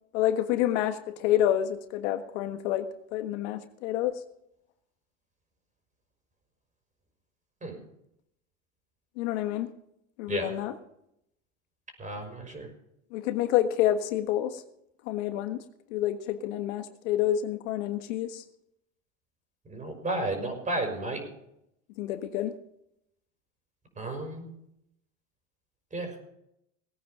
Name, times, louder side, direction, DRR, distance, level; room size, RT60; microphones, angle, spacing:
voice 1, 0.1-4.2 9.2-9.7 10.2-10.7 13.1-14.6 15.0-15.6 15.9-18.4 22.0-22.5, left 12 dB, 70° left, 7 dB, 1.5 m, -28 dB
voice 2, 12.0-12.7 19.7-21.2 24.0-24.5 25.9-26.2, right 2 dB, 20° right, 5 dB, 5.7 m, -33 dB
20.0 x 9.5 x 5.1 m, 0.77 s
supercardioid pair, 115°, 38 cm